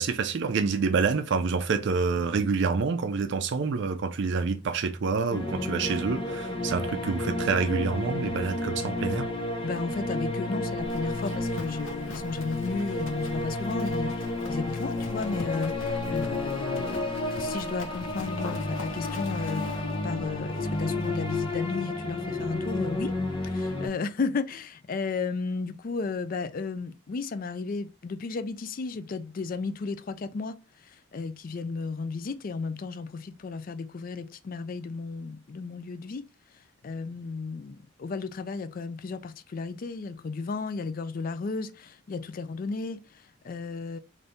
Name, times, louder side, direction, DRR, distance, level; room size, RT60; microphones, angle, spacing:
voice 1, 0.0-9.3, right 4 dB, 60° right, 0.4 m, -27 dB
sound 1, 5.3-23.9, left 2 dB, 25° left, 0.7 m, -31 dB
voice 2, 9.6-19.7 20.0-23.1 23.4-30.6 30.8-36.2 36.8-44.0, left 4 dB, 40° left, 0.4 m, -34 dB
Livestock farm animals working animals, 10.8-21.6, left 2 dB, 70° left, 0.8 m, -44 dB
3.4 x 2.6 x 4.0 m
head